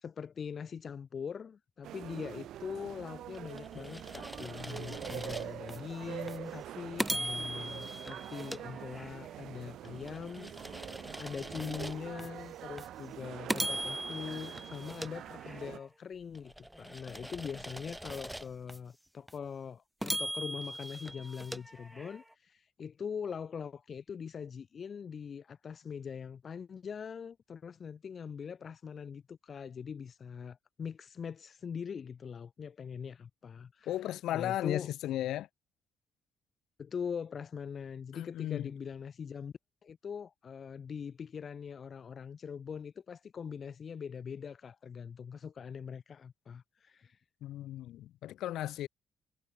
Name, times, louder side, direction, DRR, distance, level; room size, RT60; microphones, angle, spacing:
voice 1, 0.0-33.9 34.3-34.9 36.8-39.5 39.8-47.2, left 6 dB, 50° left, 1.1 m, -42 dB
sound 1, 1.8-15.8, right 12 dB, 80° right, 2.0 m, -45 dB
sound 2, 3.3-5.8 6.3-6.4 7.0-9.4 9.8-12.3 12.8-12.9 13.5-15.9 16.3-18.8 19.3-19.4 20.0-22.3, right 1 dB, 5° right, 2.8 m, -40 dB
voice 2, 33.9-35.5 38.1-38.7 47.4-48.9, left 13 dB, 85° left, 3.0 m, -35 dB
cardioid pair, 90°, 0 cm